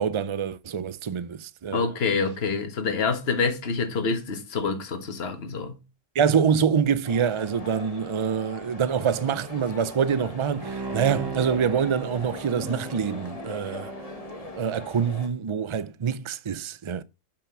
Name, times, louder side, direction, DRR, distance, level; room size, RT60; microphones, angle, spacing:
voice 1, 0.0-1.8 6.1-13.9 14.6-17.0, right 7 dB, 50° right, 0.3 m, -25 dB
voice 2, 1.7-5.8, left 4 dB, 50° left, 1.7 m, -27 dB
sound 1, 7.0-15.3, left 2 dB, 30° left, 1.5 m, -41 dB
Bowed string instrument, 10.6-15.2 15.6-15.7, right 2 dB, 20° right, 1.0 m, -38 dB
8.7 x 6.0 x 5.9 m
omnidirectional pair, 1.3 m